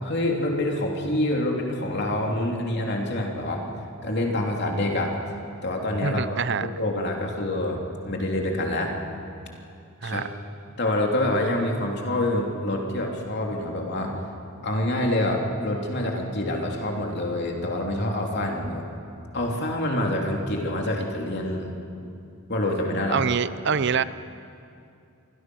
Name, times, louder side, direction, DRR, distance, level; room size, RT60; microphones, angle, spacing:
voice 1, 0.0-3.6 4.0-5.1 5.6-6.3 6.6-7.8 8.0-8.9 10.0-10.2 10.8-14.2 14.6-18.8 19.3-21.7 22.5-23.2, left 1 dB, 50° left, 0 dB, 3.1 m, -26 dB
voice 2, 6.0-6.7 10.0-10.2 23.1-24.0, right 6 dB, 55° right, 15 dB, 0.6 m, -25 dB
27.0 x 22.5 x 6.3 m, 2.6 s
head